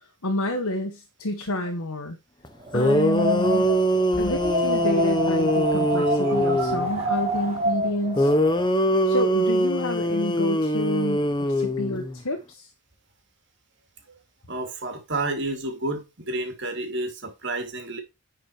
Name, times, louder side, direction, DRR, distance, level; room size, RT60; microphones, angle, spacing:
voice 1, 0.0-2.2 2.7-3.7 4.2-8.4 9.0-12.7, left 1 dB, 80° left, 1.5 m, -29 dB
sound 1, 2.4-2.5 2.7-6.9 8.2-12.2, equal, 20° left, 0.9 m, -23 dB
Wind, 2.6-8.7, equal, 25° right, 1.8 m, -27 dB
voice 2, 6.5-6.8 14.5-18.0, right 2 dB, 50° right, 2.7 m, -31 dB
10.5 x 5.0 x 4.7 m
head